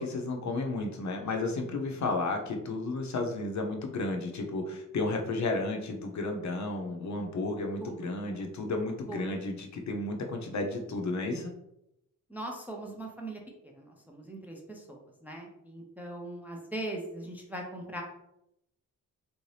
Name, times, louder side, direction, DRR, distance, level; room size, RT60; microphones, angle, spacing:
voice 1, 0.0-11.5, left 2 dB, 55° left, 3 dB, 0.6 m, -33 dB
voice 2, 12.3-18.0, right 1 dB, 5° right, 0 dB, 0.4 m, -40 dB
3.2 x 2.7 x 3.2 m, 0.83 s
wide cardioid pair, 170°, 35 cm